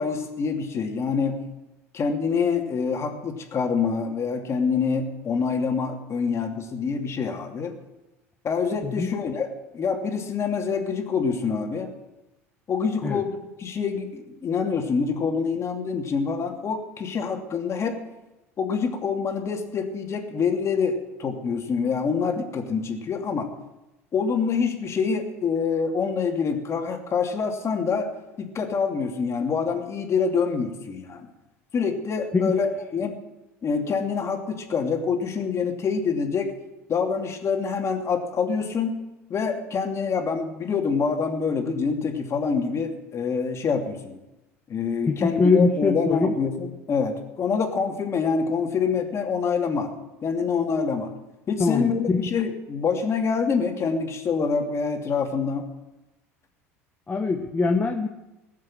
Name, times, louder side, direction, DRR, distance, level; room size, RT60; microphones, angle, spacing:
voice 1, 0.0-1.4 1.9-7.7 8.4-9.5 9.7-11.9 12.7-18.0 18.6-23.5 24.1-28.1 28.4-31.3 31.7-33.2 33.6-36.5 36.9-39.0 39.3-44.2 44.7-49.9 50.2-51.1 51.5-55.7, left 5 dB, 35° left, 3 dB, 2.7 m, -26 dB
voice 2, 8.8-9.2 13.0-13.2 32.3-32.6 45.0-46.3 51.6-52.3 57.1-58.1, left 3 dB, 20° left, 3 dB, 1.4 m, -23 dB
19.0 x 7.6 x 7.6 m, 0.99 s
hypercardioid pair, 70°, 8 cm